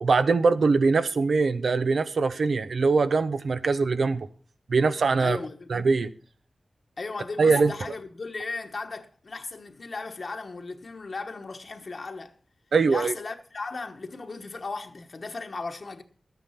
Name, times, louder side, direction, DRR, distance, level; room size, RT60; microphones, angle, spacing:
voice 1, 0.0-4.3 4.7-5.4 5.7-6.1 7.4-7.7 12.7-13.1, right 4 dB, 75° right, 0.8 m, -22 dB
voice 2, 5.2-5.7 7.0-12.3 12.9-16.0, left 3 dB, 55° left, 1.1 m, -36 dB
12.0 x 9.3 x 5.7 m
wide cardioid pair, 95°, 0 cm